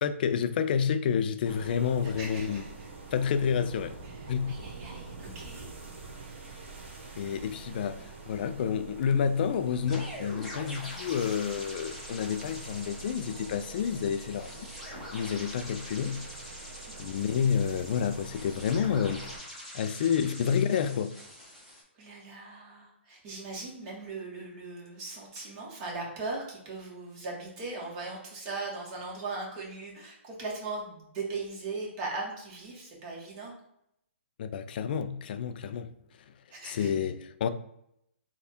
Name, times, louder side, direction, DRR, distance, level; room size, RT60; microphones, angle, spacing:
voice 1, 0.0-2.6 3.1-4.0 4.3-4.5 7.2-14.7 15.1-16.2 17.0-19.3 19.7-21.1 34.4-35.9 36.6-37.5, left 7 dB, 45° left, 0.4 m, -29 dB
sound 1, 1.4-19.4, right 4 dB, 65° right, 1.0 m, -46 dB
voice 2, 2.2-2.9 4.0-5.7 16.8-17.1 20.0-20.3 21.9-33.5 36.5-36.9, right 3 dB, 30° right, 1.4 m, -39 dB
sound 2, 9.8-21.8, left 1 dB, ahead, 0.9 m, -44 dB
3.4 x 2.3 x 4.2 m
hypercardioid pair, 155°, 7 cm